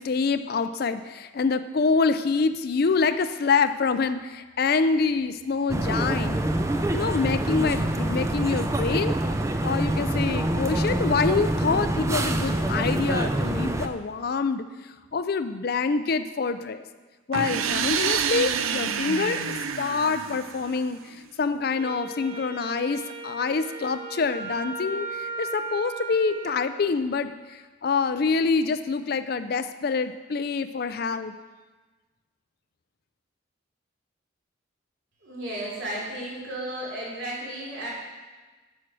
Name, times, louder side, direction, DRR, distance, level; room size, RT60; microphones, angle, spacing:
voice 1, 0.0-6.4 6.9-9.2 9.6-14.6 15.1-16.8 17.3-31.3, left 4 dB, 50° left, 11 dB, 0.4 m, -26 dB
sound 1, 5.7-13.9, right 1 dB, 15° right, 0.4 m, -26 dB
sound 2, 17.3-21.1, right 7 dB, 85° right, 0.5 m, -28 dB
Wind instrument woodwind instrument, 21.7-26.6, right 4 dB, 30° right, 1.5 m, -36 dB
voice 2, 35.2-37.9, right 1 dB, 65° right, -5 dB, 3.3 m, -34 dB
9.3 x 6.3 x 6.0 m, 1.3 s
head